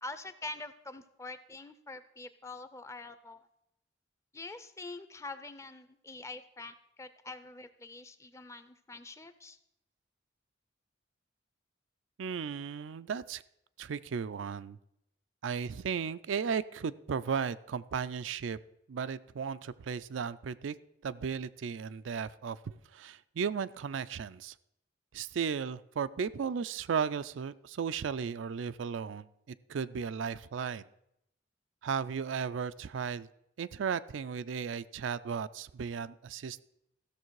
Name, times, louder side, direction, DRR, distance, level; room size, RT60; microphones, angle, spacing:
voice 1, 0.0-3.5 4.3-9.6, left 3 dB, 15° left, 12 dB, 0.5 m, -45 dB
voice 2, 12.2-13.4 13.8-14.8 15.4-18.6 18.9-20.8 21.0-24.5 25.1-29.3 29.7-30.8 31.8-33.3 33.6-36.6, right 6 dB, 85° right, 14 dB, 0.4 m, -35 dB
14.5 x 6.6 x 4.7 m, 0.80 s
head